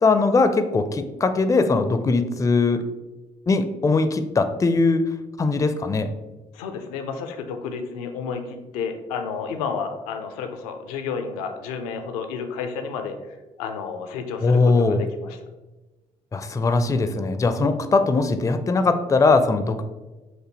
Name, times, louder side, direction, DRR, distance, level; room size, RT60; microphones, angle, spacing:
voice 1, 0.0-2.8 3.5-5.1 5.4-6.1 14.4-15.1 16.3-19.8, left 3 dB, 20° left, 9 dB, 0.4 m, -20 dB
voice 2, 6.5-15.4, left 5 dB, 80° left, 6 dB, 0.5 m, -31 dB
6.0 x 2.6 x 2.9 m, 1.1 s
hypercardioid pair, 45°, 19 cm